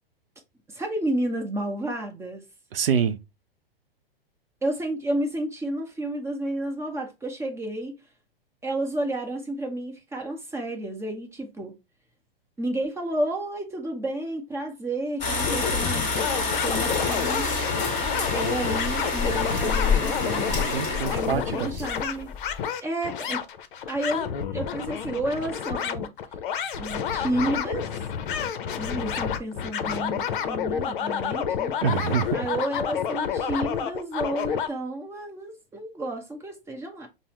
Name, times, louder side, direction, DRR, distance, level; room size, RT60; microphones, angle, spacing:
voice 1, 0.7-2.5 4.6-8.0 8.6-11.7 12.6-17.5 18.3-20.6 21.1-22.3 22.8-23.4 23.9-26.1 26.8-28.0 28.7-31.7 32.3-37.1, right 1 dB, 10° right, 0.8 m, -31 dB
voice 2, 2.7-3.2 20.5-21.7 31.8-32.4, right 7 dB, 70° right, 0.7 m, -26 dB
sound 1, 15.2-22.6, left 4 dB, 25° left, 1.6 m, -27 dB
sound 2, 15.4-34.7, left 8 dB, 60° left, 0.6 m, -30 dB
5.4 x 2.0 x 3.0 m
hypercardioid pair, 115°, 30 cm